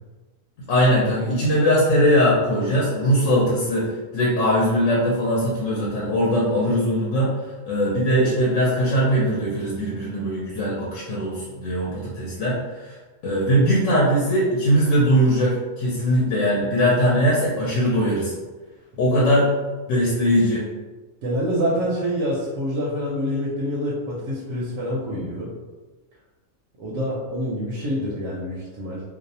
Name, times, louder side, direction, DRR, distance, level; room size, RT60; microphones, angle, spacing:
voice 1, 0.7-7.3 7.7-13.0 13.2-18.3 19.0-19.6 19.9-20.7, equal, 75° left, -5 dB, 0.9 m, -20 dB
voice 2, 21.2-25.5 26.8-29.0, equal, 80° right, -5 dB, 1.0 m, -26 dB
2.5 x 2.0 x 2.7 m, 1.3 s
omnidirectional pair, 1.4 m